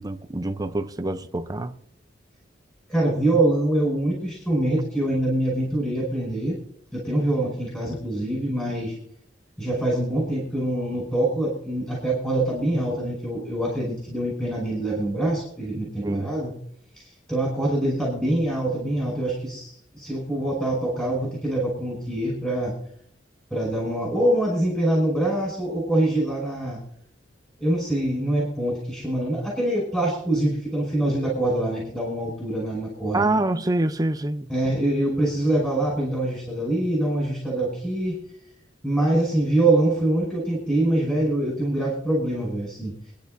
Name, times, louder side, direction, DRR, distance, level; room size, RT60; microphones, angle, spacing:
voice 1, 0.0-1.7 16.0-16.3 33.1-34.5, right 2 dB, 20° right, 0.6 m, -25 dB
voice 2, 2.9-6.6 6.9-8.9 9.6-16.5 16.9-22.7 23.5-26.8 27.6-33.2 34.5-38.2 38.8-42.9, right 1 dB, 5° left, 5.6 m, -24 dB
27.5 x 10.5 x 2.7 m
head